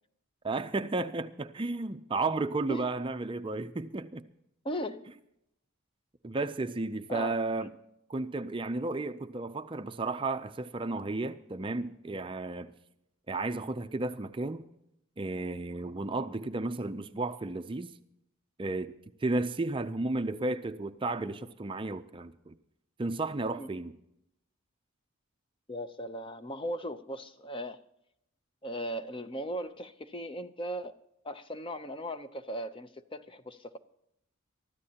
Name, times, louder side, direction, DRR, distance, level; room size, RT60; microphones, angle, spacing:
voice 1, 0.4-4.2 6.2-7.7 8.1-12.7 13.3-14.7 15.2-17.9 18.6-18.9 19.2-22.5 23.0-23.9, right 2 dB, 25° right, 0.4 m, -33 dB
voice 2, 4.6-5.1 7.1-7.4 23.6-23.7 25.7-27.8 28.6-30.9 31.2-33.8, equal, 25° left, 0.6 m, -37 dB
24.0 x 13.5 x 2.9 m
head